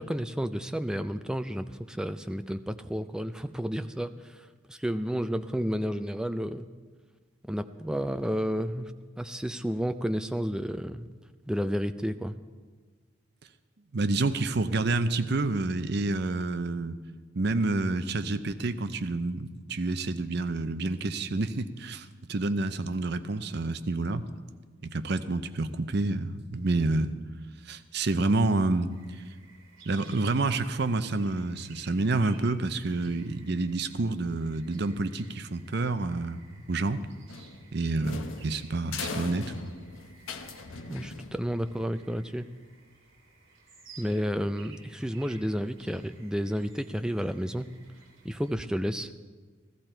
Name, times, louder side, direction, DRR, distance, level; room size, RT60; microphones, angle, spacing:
voice 1, 0.0-6.7 7.4-8.9 9.2-11.1 11.5-12.4 40.9-42.5 44.0-47.7 48.2-49.1, equal, 5° right, 9 dB, 0.4 m, -31 dB
voice 2, 13.9-17.0 17.4-24.2 24.8-27.1 27.7-28.9 29.9-36.4 36.7-37.0 37.7-39.5, right 2 dB, 55° right, 11 dB, 0.6 m, -28 dB
sound 1, 28.9-48.5, right 4 dB, 75° right, 2.5 m, -56 dB
sound 2, 37.3-41.7, left 4 dB, 85° left, 0.8 m, -40 dB
15.0 x 14.5 x 4.5 m, 1.5 s
head